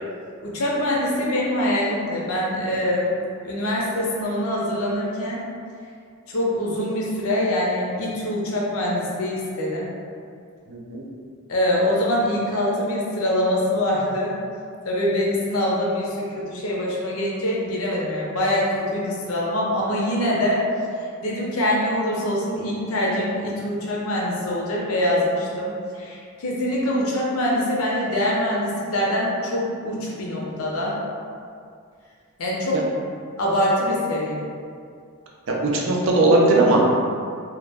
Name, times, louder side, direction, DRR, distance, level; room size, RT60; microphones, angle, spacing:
voice 1, 0.4-3.1 3.4-5.4 6.3-9.9 11.5-14.4 14.8-20.6 21.2-31.0 32.4-32.9 33.4-34.4, left 1 dB, 75° left, -4 dB, 0.6 m, -24 dB
voice 2, 10.7-11.0 35.5-36.9, right 2 dB, 60° right, -2 dB, 0.4 m, -18 dB
2.3 x 2.1 x 3.3 m, 2.3 s
head